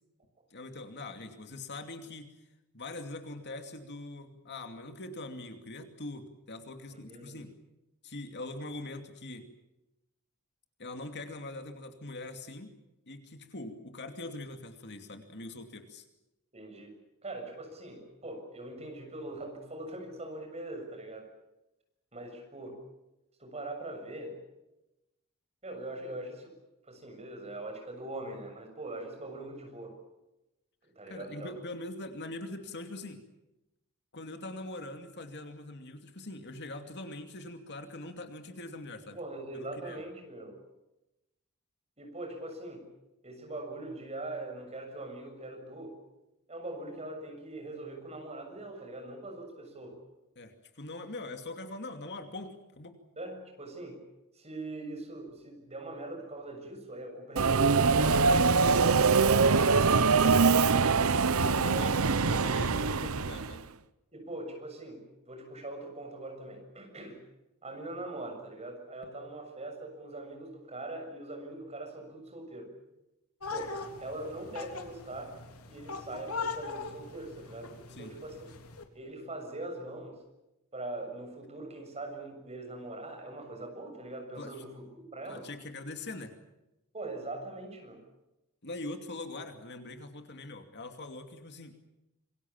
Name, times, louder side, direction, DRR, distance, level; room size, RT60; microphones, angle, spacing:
voice 1, 0.5-2.3 2.7-7.5 8.0-9.5 10.8-12.7 13.1-16.0 31.1-33.2 34.1-39.2 39.5-40.0 50.4-53.0 60.3-61.1 61.4-63.6 69.0-69.1 77.9-78.1 84.4-84.7 85.2-86.3 88.6-91.8, left 2 dB, 50° left, 6 dB, 2.6 m, -42 dB
voice 2, 7.1-7.4 16.5-16.9 17.2-21.3 22.1-22.8 23.4-24.4 25.6-26.5 26.9-30.0 30.8-31.5 39.1-40.6 42.0-42.9 43.2-46.0 46.5-50.0 53.2-54.0 54.3-60.1 64.1-67.2 67.6-72.7 73.5-73.8 74.0-75.4 75.7-78.5 78.9-80.2 80.7-85.5 86.9-88.0, right 2 dB, 30° right, 4 dB, 7.1 m, -42 dB
Subway metro underground, 57.4-63.6, right 4 dB, 70° right, 0.9 m, -23 dB
sound 1, 73.4-78.8, left 4 dB, 80° left, 3.3 m, -40 dB
27.0 x 23.5 x 7.4 m, 0.94 s
head